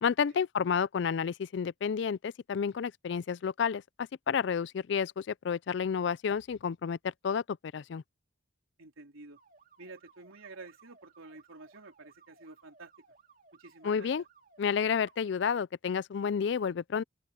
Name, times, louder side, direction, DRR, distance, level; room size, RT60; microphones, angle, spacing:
voice 1, 0.0-3.8 4.3-7.0 7.2-7.4 7.7-8.0 13.8-14.2 14.6-17.0, left 6 dB, 60° left, 0.3 m, -30 dB
voice 2, 8.8-9.4 9.8-12.9 13.5-14.1, right 3 dB, 90° right, 3.6 m, -50 dB
sound 1, 9.4-15.5, right 5 dB, 40° right, 2.6 m, -62 dB
open air
head